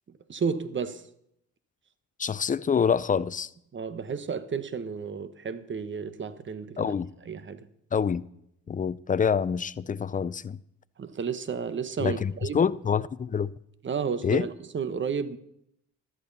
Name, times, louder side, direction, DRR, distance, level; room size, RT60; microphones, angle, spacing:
voice 1, 0.3-1.0 3.7-6.9 7.3-7.7 11.0-12.6 13.8-15.4, right 6 dB, 40° right, 1.2 m, -32 dB
voice 2, 2.2-3.5 6.8-7.1 7.9-8.3 8.7-10.6 12.0-13.5 14.2-14.5, left 6 dB, 25° left, 0.6 m, -26 dB
14.5 x 12.5 x 4.1 m
cardioid pair, 90°, 30 cm